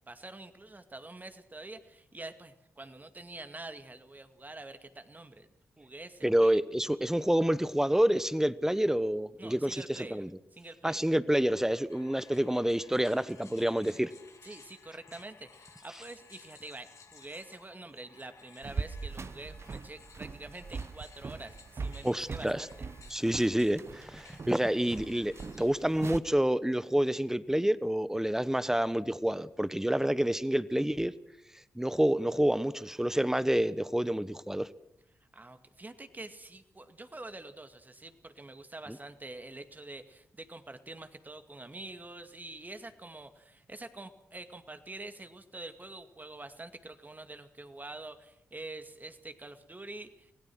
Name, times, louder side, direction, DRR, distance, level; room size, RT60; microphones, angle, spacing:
voice 1, 0.1-5.5 5.8-6.6 9.4-10.2 10.5-11.1 14.4-22.9 35.3-50.3, right 2 dB, 30° right, 9 dB, 2.2 m, -46 dB
voice 2, 6.2-10.3 10.8-14.1 22.0-22.7 23.1-31.1 31.7-34.7, right 1 dB, 10° right, 16 dB, 1.1 m, -28 dB
sound 1, 11.9-25.7, left 5 dB, 60° left, 2.3 m, -57 dB
sound 2, 18.6-26.2, right 4 dB, 50° right, 1.0 m, -41 dB
25.0 x 17.0 x 6.3 m, 0.78 s
supercardioid pair, 40°, 6 cm